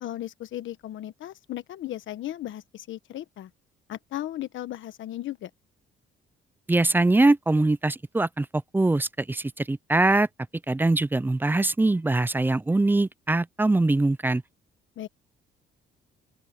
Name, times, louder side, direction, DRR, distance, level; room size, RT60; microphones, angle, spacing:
voice 1, 0.0-3.5 3.9-5.5 15.0-15.1, left 13 dB, 75° left, 1.3 m, -36 dB
voice 2, 6.7-8.5 8.7-10.3 10.7-14.4, right 2 dB, 10° right, 0.4 m, -22 dB
open air
cardioid pair, 90°, 20 cm